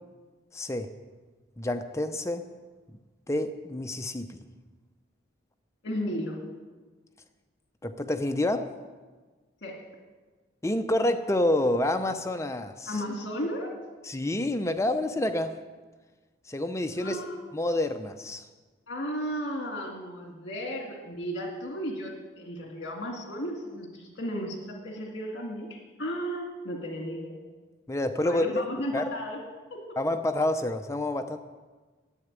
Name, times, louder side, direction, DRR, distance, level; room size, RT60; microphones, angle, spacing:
voice 1, 0.5-0.9 1.6-2.4 3.3-4.4 7.8-8.7 10.6-13.0 14.0-15.5 16.5-17.2 17.5-18.4 27.9-28.7 28.9-29.1 30.0-31.4, left 1 dB, 15° left, 8 dB, 0.5 m, -28 dB
voice 2, 5.8-6.4 9.6-9.8 12.9-13.7 17.0-17.4 18.9-27.4 28.2-29.4 29.7-30.0, equal, 60° left, 0 dB, 2.1 m, -34 dB
11.0 x 8.0 x 9.6 m, 1.4 s
head